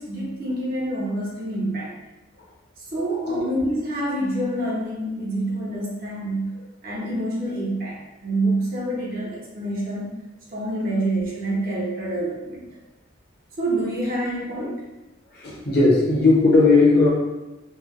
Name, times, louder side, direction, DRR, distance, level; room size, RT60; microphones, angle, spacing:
voice 1, 0.0-1.9 2.9-10.2 10.5-12.8 13.6-14.8, right 1 dB, 45° right, -5 dB, 0.9 m, -27 dB
voice 2, 15.3-17.1, left 3 dB, 50° left, -4 dB, 0.9 m, -17 dB
3.2 x 2.3 x 3.6 m, 1.1 s
head